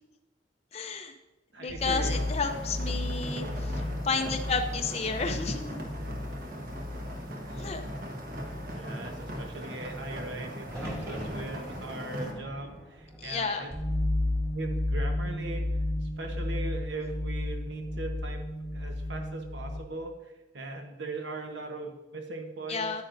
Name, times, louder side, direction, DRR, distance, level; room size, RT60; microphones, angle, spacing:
voice 1, 0.7-1.1 1.6-5.8 7.6-7.8 13.2-13.7 22.7-23.0, left 4 dB, 35° left, 5 dB, 0.5 m, -32 dB
voice 2, 1.5-2.2 8.7-13.7 14.5-15.6 16.0-18.4 18.7-23.0, right 2 dB, 65° right, 4 dB, 1.1 m, -39 dB
sound 1, 1.7-11.2 11.5-11.9 12.3-12.7 13.1-13.4 13.7-19.8, left 1 dB, 5° left, 0.8 m, -34 dB
sound 2, 1.8-12.3, equal, 50° right, 1.4 m, -39 dB
sound 3, 10.6-14.7 15.1-15.8 17.7-18.2, equal, 15° right, 2.0 m, -44 dB
9.2 x 8.8 x 2.6 m, 1.0 s
head